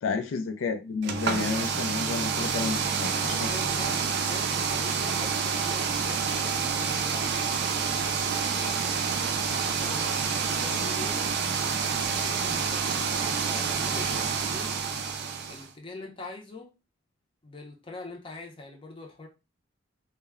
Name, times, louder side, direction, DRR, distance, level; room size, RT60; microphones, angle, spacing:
voice 1, 0.0-3.4, left 5 dB, 75° left, 0.3 m, -31 dB
sound 1, 1.0-15.7, right 6 dB, 55° right, 0.4 m, -28 dB
voice 2, 3.2-8.8 9.5-11.2 12.1-14.7 15.4-16.7 17.4-19.3, left 2 dB, 25° left, 0.6 m, -44 dB
2.2 x 2.0 x 3.4 m
head